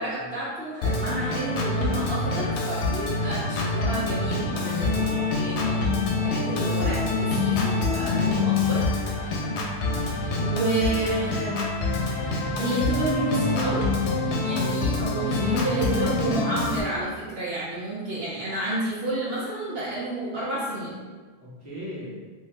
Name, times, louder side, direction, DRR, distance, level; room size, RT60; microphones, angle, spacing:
voice 1, 0.0-5.1 5.3-8.8 10.4-11.7 12.6-13.9 14.4-20.9, right 2 dB, 70° right, -8 dB, 0.9 m, -30 dB
Organ, 0.8-16.8, left 3 dB, 90° left, 0.9 m, -26 dB
voice 2, 4.6-5.5 9.3-9.6 21.4-22.2, left 1 dB, 40° right, -8 dB, 1.2 m, -37 dB
2.8 x 2.7 x 3.2 m, 1.4 s
omnidirectional pair, 1.1 m